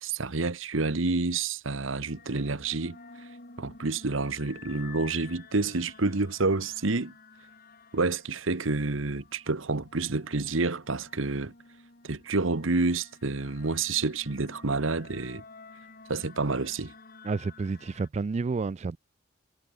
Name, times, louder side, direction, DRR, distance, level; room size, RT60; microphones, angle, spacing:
voice 1, 0.0-3.0 3.6-7.1 7.9-11.5 12.0-15.4 16.1-16.9, right 3 dB, 80° right, 1.3 m, -29 dB
sound 1, 2.0-18.1, left 4 dB, 45° left, 3.1 m, -51 dB
voice 2, 17.2-19.0, right 4 dB, 35° right, 0.3 m, -30 dB
head